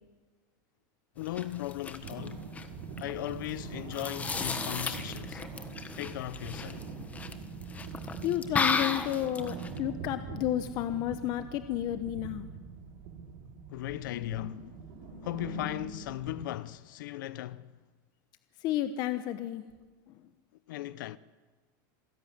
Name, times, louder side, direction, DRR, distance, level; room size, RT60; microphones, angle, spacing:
voice 1, 1.2-2.4 3.0-5.4 6.0-6.9 13.7-14.6 15.2-17.8 20.7-21.2, left 15 dB, 80° left, 0.8 m, -37 dB
sound 1, 1.2-9.8, left 4 dB, 15° left, 1.4 m, -35 dB
sound 2, 2.0-16.5, right 6 dB, 50° right, 3.2 m, -43 dB
voice 2, 8.2-12.5 14.1-14.7 15.0-15.3 18.6-19.6 20.1-20.2, left 12 dB, 40° left, 1.1 m, -32 dB
27.0 x 16.0 x 9.7 m
supercardioid pair, 160°, 11 cm